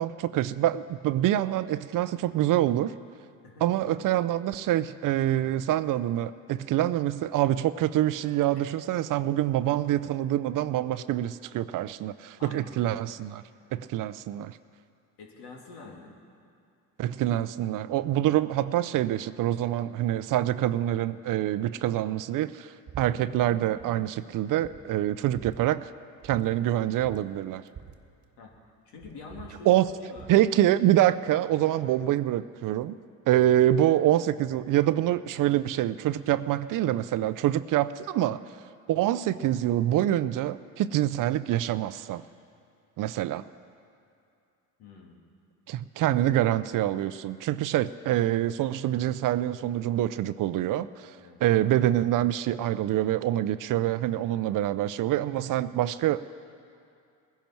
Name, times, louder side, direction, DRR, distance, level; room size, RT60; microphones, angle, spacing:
voice 1, 0.0-2.9 3.6-13.4 13.7-14.6 17.0-25.9 26.2-27.6 29.7-29.9 30.3-33.0 33.3-38.4 38.9-42.2 43.0-43.4 45.7-56.3, right 13 dB, 55° right, 15 dB, 0.6 m, -26 dB
voice 2, 12.4-13.0 15.2-16.2 28.4-28.5 28.8-30.3 44.8-45.2 51.1-51.4, left 4 dB, 70° left, -1 dB, 2.8 m, -46 dB
sound 1, 22.9-23.1 23.4-23.9 24.3-24.4 24.6-25.6 26.2-26.4 26.7-26.8 27.0-28.7 29.0-30.4, right 8 dB, 35° right, 1.2 m, -46 dB
20.5 x 10.5 x 4.5 m, 2.4 s
supercardioid pair, 80°, 40 cm